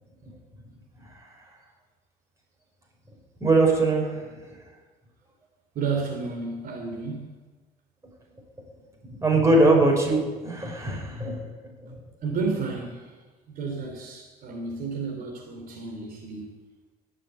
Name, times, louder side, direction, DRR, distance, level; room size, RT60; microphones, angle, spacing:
voice 1, 3.4-4.5 9.2-11.5 11.8-12.0, right 2 dB, 20° right, -1 dB, 5.6 m, -21 dB
voice 2, 5.7-7.3 12.2-13.1 13.5-16.5, right 4 dB, 60° right, 1 dB, 3.0 m, -31 dB
19.0 x 7.5 x 8.3 m, 1.2 s
cardioid pair, 110°, 17 cm